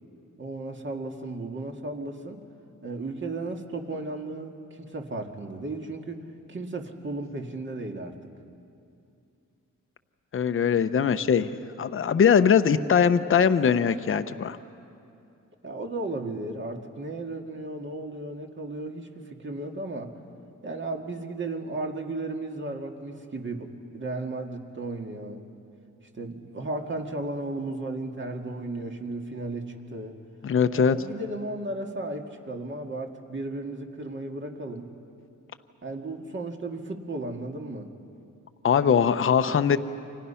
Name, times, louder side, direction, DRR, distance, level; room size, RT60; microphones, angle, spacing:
voice 1, 0.4-2.4 2.8-6.2 6.5-8.2 11.0-11.2 15.6-20.1 20.6-25.4 26.1-30.2 30.7-34.9 35.8-37.9, right 2 dB, 40° right, 3 dB, 2.2 m, -35 dB
voice 2, 10.3-11.5 11.8-14.6 30.4-31.0 38.6-39.8, left 7 dB, 45° left, 10 dB, 0.8 m, -21 dB
29.5 x 25.5 x 5.8 m, 2.6 s
cardioid pair, 105°, 30 cm